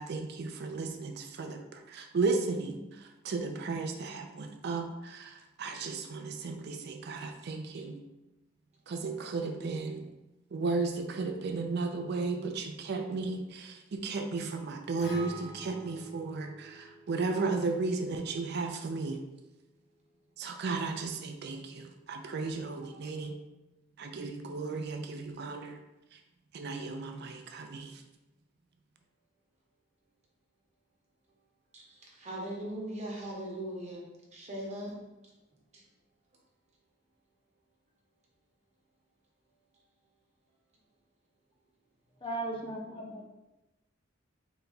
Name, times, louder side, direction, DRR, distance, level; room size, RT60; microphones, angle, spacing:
voice 1, 0.0-8.0 8.9-10.1 10.5-19.2 20.4-23.4 24.0-25.8 26.1-26.2 26.5-28.0, right 3 dB, 60° right, 5 dB, 0.4 m, -34 dB
Acoustic guitar, 15.0-19.2, right 1 dB, 55° left, 1.0 m, -49 dB
voice 2, 31.7-35.0 35.7-35.8, right 1 dB, 35° right, -3 dB, 1.0 m, -40 dB
voice 3, 42.2-43.3, right 1 dB, 25° left, 0 dB, 0.5 m, -37 dB
4.0 x 2.2 x 3.9 m, 1.0 s
head